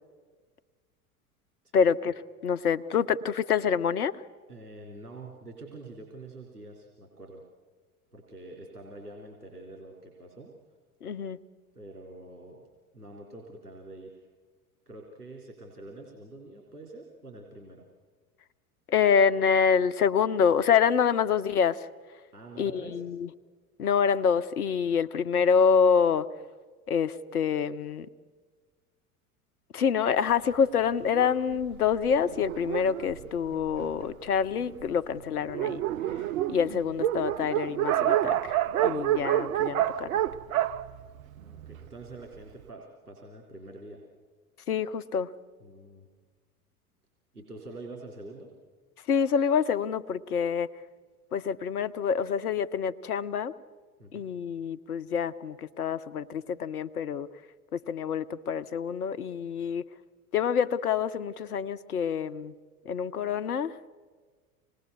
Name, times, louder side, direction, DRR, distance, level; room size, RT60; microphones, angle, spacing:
voice 1, 1.7-2.1 2.4-4.1 11.0-11.4 18.9-21.9 22.6-23.3 23.8-26.3 26.9-28.1 29.7-35.8 36.5-40.2 44.7-45.3 49.1-50.7 51.3-53.5 54.1-57.3 57.7-59.8 60.3-62.5 62.8-63.7, left 7 dB, 75° left, 12 dB, 1.0 m, -26 dB
voice 2, 4.5-7.4 8.1-10.5 11.7-12.7 12.9-14.3 14.9-17.9 22.3-23.0 41.4-44.0 45.6-46.1 47.3-48.5 54.0-54.3, right 2 dB, 85° right, -2 dB, 3.5 m, -46 dB
Dog, 31.1-34.1 34.8-34.9 35.2-35.3 35.5-41.9, right 12 dB, 65° right, 0.8 m, -28 dB
26.5 x 20.0 x 6.8 m, 1.5 s
figure-of-eight pair, 85°, 45 cm